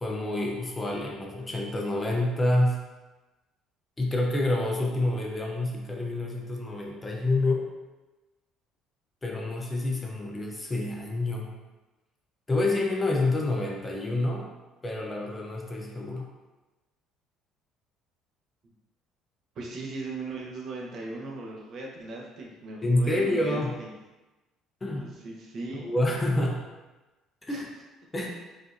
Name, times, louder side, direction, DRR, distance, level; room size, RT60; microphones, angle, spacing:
voice 1, 0.0-2.8 4.0-7.7 9.2-11.5 12.5-14.5 14.8-16.3 22.8-23.7 24.8-25.0 25.7-26.6 27.4-27.7 28.1-28.3, left 2 dB, 15° left, 0 dB, 0.5 m, -28 dB
voice 2, 19.5-23.9 24.8-25.9 27.5-27.6, right 2 dB, 45° right, -2 dB, 0.8 m, -38 dB
5.0 x 2.6 x 2.5 m, 1.1 s
cardioid pair, 140°, 0 cm